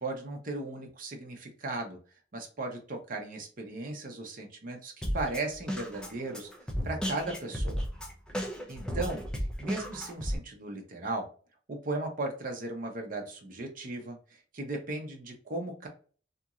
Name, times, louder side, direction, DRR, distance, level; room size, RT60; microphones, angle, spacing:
voice 1, 0.0-2.0 2.3-6.5 6.8-7.8 8.4-9.3 9.6-11.3 11.7-14.2 14.5-15.9, right 2 dB, 45° right, 2 dB, 0.8 m, -36 dB
Drum kit, 5.0-10.4, equal, 5° left, 0.6 m, -34 dB
2.8 x 2.6 x 2.3 m, 0.41 s
head